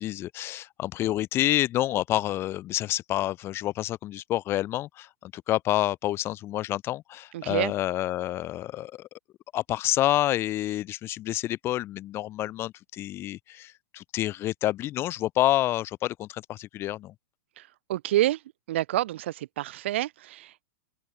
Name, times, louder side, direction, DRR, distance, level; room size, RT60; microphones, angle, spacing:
voice 1, 0.0-9.1 9.5-17.1, left 14 dB, 35° left, 3.8 m, -28 dB
voice 2, 7.3-7.7 17.6-18.4 18.7-20.7, right 14 dB, 60° right, 2.3 m, -28 dB
figure-of-eight pair, 100°, 7 cm